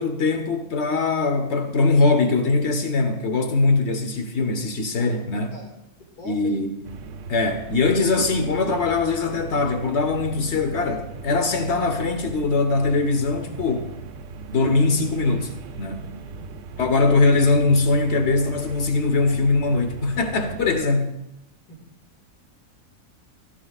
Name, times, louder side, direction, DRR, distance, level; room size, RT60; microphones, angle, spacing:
voice 1, 0.0-5.5 6.2-6.7 7.3-13.9 14.5-15.5 15.8-16.1 16.8-21.2, left 3 dB, 50° left, 1.4 m, -21 dB
voice 2, 5.0-5.7 6.2-6.6 16.0-16.5 21.7-21.8, left 2 dB, 80° left, 2.8 m, -42 dB
sound 1, 6.8-20.8, right 3 dB, 65° right, 0.7 m, -39 dB
14.5 x 14.5 x 2.4 m
omnidirectional pair, 1.6 m